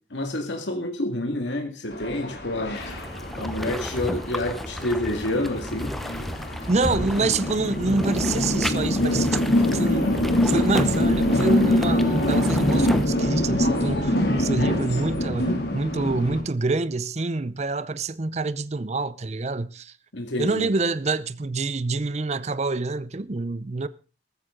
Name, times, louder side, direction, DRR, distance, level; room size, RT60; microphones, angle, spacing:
voice 1, 0.1-2.8 3.4-6.0 6.9-7.3 20.1-20.7, left 1 dB, 80° left, 2.2 m, -28 dB
sound 1, 1.9-16.4, left 1 dB, 60° left, 2.7 m, -24 dB
sound 2, 2.7-13.1, equal, ahead, 0.7 m, -33 dB
voice 2, 6.7-19.9 20.4-23.9, right 3 dB, 35° right, 0.6 m, -27 dB
14.0 x 14.0 x 3.8 m
head